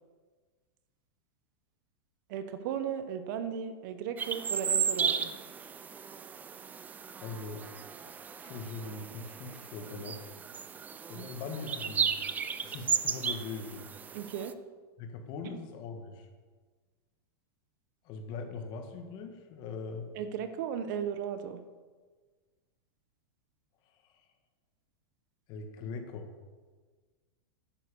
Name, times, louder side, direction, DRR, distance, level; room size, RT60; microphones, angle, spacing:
voice 1, 2.3-5.3 11.1-11.3 14.1-14.5 15.4-15.6 20.1-21.6, right 8 dB, 50° right, 10 dB, 1.0 m, -36 dB
sound 1, 4.2-14.5, right 7 dB, 10° right, 0.4 m, -35 dB
voice 2, 6.8-7.7 8.0-10.2 11.1-12.2 12.6-13.9 15.0-16.3 18.0-20.1 24.0-24.2 25.5-26.3, left 4 dB, 35° left, 5 dB, 1.7 m, -41 dB
11.0 x 9.6 x 6.9 m, 1.4 s
supercardioid pair, 155°, 13 cm